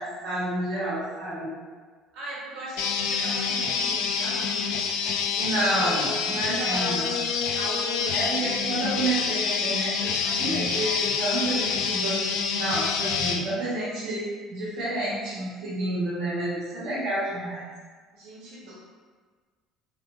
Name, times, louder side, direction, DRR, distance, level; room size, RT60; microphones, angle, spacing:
voice 1, 0.0-1.5 5.3-7.1 8.1-12.2 12.5-17.6 18.7-18.8, right 1 dB, 60° right, -10 dB, 1.3 m, -29 dB
voice 2, 2.1-5.1 5.6-5.8 6.2-8.4 18.1-18.7, right 1 dB, 90° right, -7 dB, 1.0 m, -38 dB
sound 1, 2.8-13.4, left 5 dB, 80° left, 0.3 m, -27 dB
3.6 x 3.0 x 2.4 m, 1.5 s
cardioid pair, 160°, 0 cm